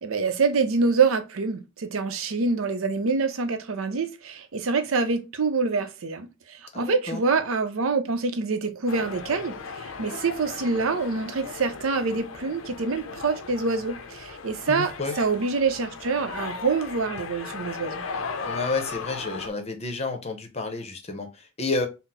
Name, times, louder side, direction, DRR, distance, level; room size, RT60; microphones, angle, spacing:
voice 1, 0.0-14.9 15.2-18.0, right 4 dB, 80° right, 0.6 m, -26 dB
voice 2, 6.7-7.2 14.7-15.2 18.5-21.9, left 3 dB, 30° left, 0.7 m, -30 dB
sound 1, 8.9-19.5, left 4 dB, 70° left, 0.5 m, -37 dB
4.1 x 2.0 x 4.1 m
head